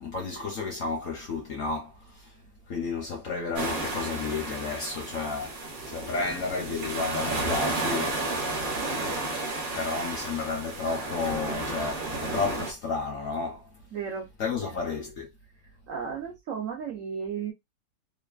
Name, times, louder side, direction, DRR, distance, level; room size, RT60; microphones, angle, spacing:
voice 1, 0.0-2.4 2.7-5.6 5.9-8.2 8.7-9.4 9.7-13.7 14.4-15.3, left 4 dB, 65° left, 0.8 m, -32 dB
sound 1, 3.6-12.7, right 2 dB, 55° right, 1.1 m, -32 dB
voice 2, 13.9-14.3 14.6-14.9 15.9-17.5, right 6 dB, 80° right, 0.7 m, -34 dB
3.1 x 2.2 x 2.3 m
omnidirectional pair, 2.1 m